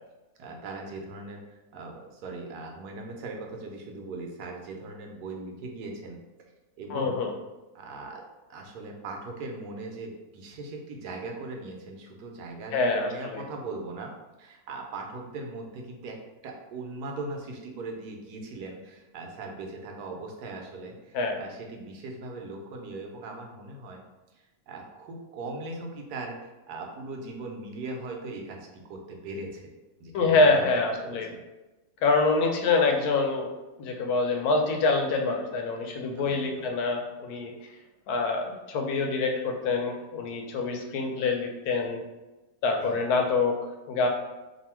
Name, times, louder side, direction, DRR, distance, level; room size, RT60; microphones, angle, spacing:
voice 1, 0.4-6.2 6.8-7.2 7.7-8.2 8.5-14.1 14.4-16.2 16.4-24.0 24.3-29.7 30.0-30.7 31.0-31.4 36.0-36.7 42.8-43.0, right 3 dB, 85° right, 1 dB, 1.2 m, -39 dB
voice 2, 6.9-7.3 12.7-13.4 21.1-21.4 30.1-31.3 32.0-33.5 33.8-37.5 38.1-42.0 42.6-43.6 43.9-44.1, left 3 dB, 80° left, 3 dB, 1.1 m, -25 dB
2.7 x 2.6 x 4.3 m, 1.1 s
omnidirectional pair, 1.6 m